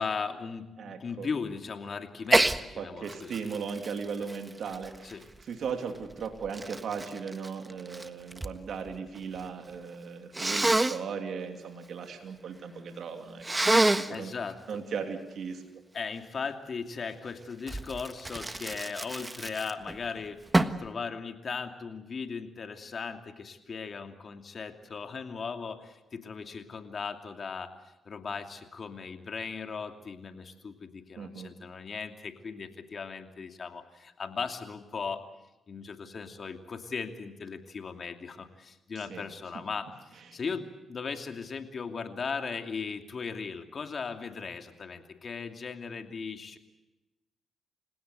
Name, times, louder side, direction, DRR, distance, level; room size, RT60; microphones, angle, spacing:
voice 1, 0.0-3.3 5.0-5.2 13.7-14.8 15.9-20.4 20.8-27.7 28.0-35.3 35.7-46.6, left 5 dB, 55° left, 6 dB, 2.7 m, -38 dB
voice 2, 0.8-1.3 2.8-13.4 13.8-14.3 14.7-15.6 31.2-31.5 38.9-39.3 40.3-40.4, right 6 dB, 70° right, 5 dB, 2.9 m, -37 dB
Sneeze, 2.3-2.6 3.1-5.4 6.1-8.6 8.9-9.5 10.3-11.0 13.4-14.2 17.7-20.0 20.5-20.9, right 2 dB, 20° right, 1.5 m, -27 dB
29.5 x 17.0 x 8.2 m, 1.0 s
supercardioid pair, 55°, 0 cm